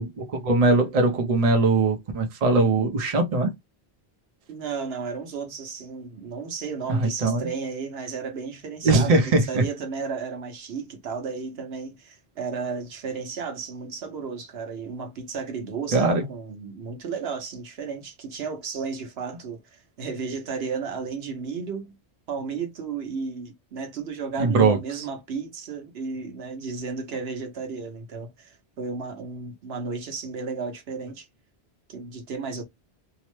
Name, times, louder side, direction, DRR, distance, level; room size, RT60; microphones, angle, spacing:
voice 1, 0.0-3.5 6.9-7.5 8.8-9.6 15.9-16.2 24.4-25.0, right 3 dB, 40° right, 0.6 m, -21 dB
voice 2, 4.5-22.0 22.3-31.3 31.9-32.6, right 5 dB, 70° right, 1.0 m, -33 dB
2.8 x 2.0 x 3.0 m
omnidirectional pair, 1.1 m